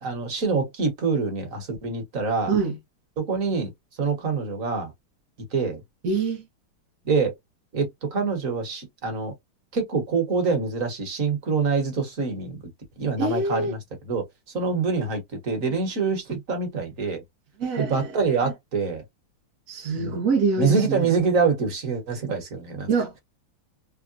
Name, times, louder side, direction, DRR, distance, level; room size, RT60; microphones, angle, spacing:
voice 1, 0.0-2.5 3.2-3.7 4.0-4.9 5.5-5.8 7.0-7.3 7.7-9.3 9.7-12.6 13.0-13.8 14.1-14.2 14.5-17.2 17.8-19.0 20.0-20.2 20.6-22.9, right 4 dB, 45° right, 1.2 m, -25 dB
voice 2, 2.5-2.8 6.0-6.4 13.2-13.7 17.6-18.1 18.4-18.5 19.7-21.1 22.9-23.2, right 4 dB, 75° right, 0.7 m, -25 dB
3.6 x 2.1 x 2.4 m
omnidirectional pair, 2.4 m